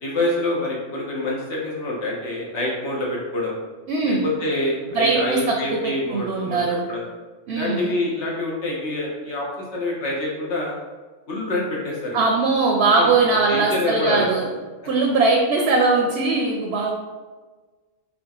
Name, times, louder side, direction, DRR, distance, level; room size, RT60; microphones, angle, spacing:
voice 1, 0.0-3.6 4.1-7.0 7.5-9.5 9.7-10.7 11.3-12.2 13.0-13.1 13.5-14.3, left 1 dB, 65° left, -3 dB, 1.2 m, -26 dB
voice 2, 3.9-4.2 4.9-5.5 5.8-6.8 7.5-7.9 12.1-14.5 14.9-16.9, right 3 dB, 65° right, 0 dB, 0.8 m, -20 dB
4.1 x 3.7 x 2.3 m, 1.3 s
omnidirectional pair, 1.3 m